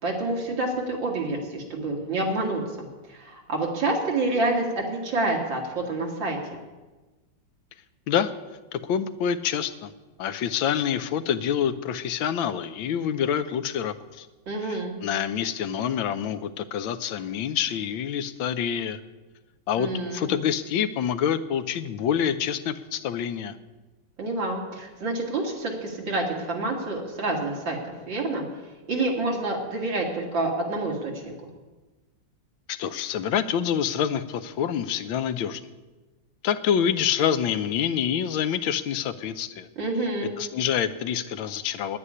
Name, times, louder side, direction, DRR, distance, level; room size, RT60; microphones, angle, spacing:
voice 1, 0.0-2.6 3.1-6.6 14.5-14.9 19.8-20.3 24.2-28.4 28.9-31.3 39.8-40.3, right 2 dB, 70° right, -1 dB, 2.9 m, -28 dB
voice 2, 8.7-9.9 10.2-14.3 14.7-19.0 19.7-23.6 32.7-35.6 36.4-39.7 40.4-42.0, left 8 dB, 80° left, 11 dB, 1.5 m, -27 dB
9.7 x 9.6 x 9.9 m, 1.2 s
omnidirectional pair, 2.1 m